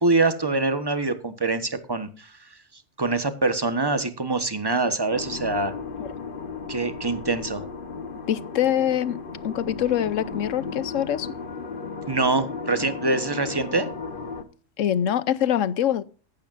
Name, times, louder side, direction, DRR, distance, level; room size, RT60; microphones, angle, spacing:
voice 1, 0.0-2.3 3.0-5.7 6.7-7.7 12.1-13.9, right 3 dB, 20° right, 1.2 m, -24 dB
sound 1, 5.1-14.4, left 4 dB, 45° left, 1.3 m, -35 dB
voice 2, 8.3-9.2 9.4-11.3 14.8-16.0, left 10 dB, 80° left, 1.1 m, -24 dB
14.5 x 11.5 x 2.6 m
omnidirectional pair, 1.3 m